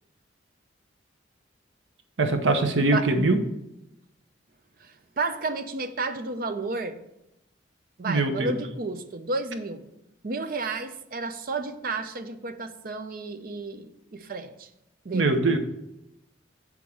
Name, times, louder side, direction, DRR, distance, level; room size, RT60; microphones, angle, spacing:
voice 1, 2.2-3.4 8.1-8.5 15.1-15.6, right 2 dB, 80° right, 6 dB, 0.8 m, -22 dB
voice 2, 4.8-7.0 8.0-9.9 10.2-14.7 15.0-15.3, right 3 dB, 50° right, 9 dB, 0.5 m, -32 dB
7.1 x 3.6 x 6.2 m, 0.86 s
head